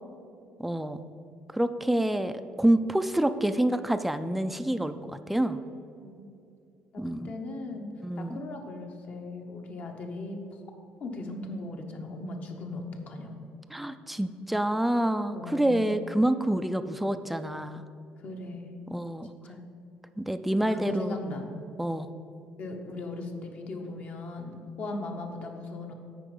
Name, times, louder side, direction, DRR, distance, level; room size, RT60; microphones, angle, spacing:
voice 1, 0.6-1.0 1.5-5.6 7.0-7.3 8.0-8.4 13.7-17.8 18.9-19.3 20.2-21.1 21.8-22.1, right 1 dB, 5° right, 10 dB, 0.3 m, -27 dB
voice 2, 6.0-6.3 6.9-7.9 8.2-10.4 11.0-13.3 15.3-15.9 18.2-18.9 19.4-19.6 20.6-21.5 22.6-25.9, left 2 dB, 50° left, 3 dB, 1.0 m, -38 dB
8.4 x 4.9 x 5.4 m, 2.6 s
cardioid pair, 115°, 3 cm